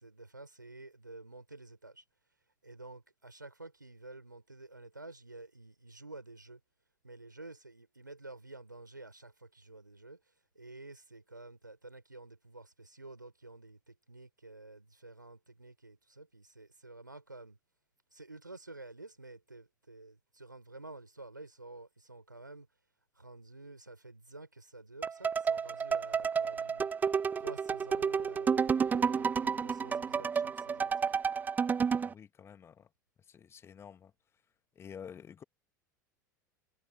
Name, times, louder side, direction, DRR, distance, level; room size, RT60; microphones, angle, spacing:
voice 1, 0.0-2.0 2.6-6.6 7.0-10.2 10.5-17.6 18.1-22.7 23.1-26.9 27.4-31.1, right 2 dB, 85° right, 5.3 m, -50 dB
sound 1, 25.0-32.1, right 6 dB, 15° right, 0.4 m, -30 dB
voice 2, 32.0-32.9 33.3-34.1 34.7-35.4, left 7 dB, 25° left, 1.5 m, -49 dB
figure-of-eight pair, 80°, 10 cm